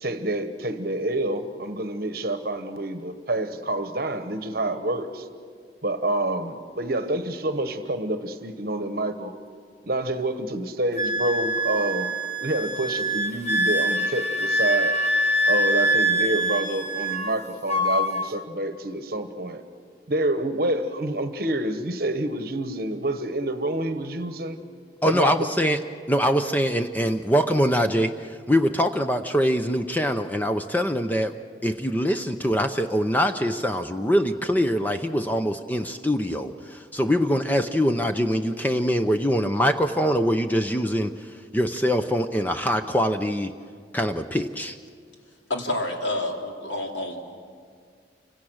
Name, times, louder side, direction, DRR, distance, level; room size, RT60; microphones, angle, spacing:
voice 1, 0.0-5.3 5.8-9.3 9.9-12.1 12.4-15.0 15.5-19.6 20.1-24.6 25.0-25.5, right 1 dB, 55° right, 9 dB, 1.2 m, -28 dB
Wind instrument woodwind instrument, 11.0-17.4 17.7-18.3, right 1 dB, 40° left, 1.4 m, -24 dB
voice 2, 25.0-25.8 26.1-31.3 31.6-41.1 41.5-43.5 43.9-44.8, equal, 10° left, 7 dB, 0.6 m, -23 dB
voice 3, 45.5-47.4, left 1 dB, 85° left, 1 dB, 3.4 m, -29 dB
29.5 x 25.5 x 6.4 m, 2.1 s
head